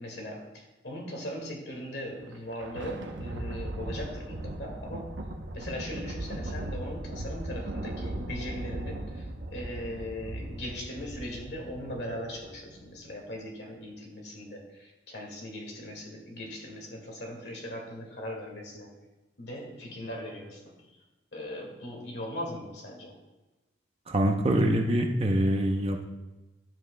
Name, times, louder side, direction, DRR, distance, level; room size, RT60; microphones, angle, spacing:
voice 1, 0.0-5.1 5.5-18.9 19.4-20.6 21.3-23.2, left 1 dB, 65° left, 0 dB, 2.0 m, -39 dB
Thunder, 2.2-12.9, right 1 dB, 80° right, 0.8 m, -38 dB
voice 2, 24.1-26.0, right 1 dB, 30° right, 4 dB, 0.7 m, -25 dB
11.5 x 7.7 x 2.2 m, 1.1 s
head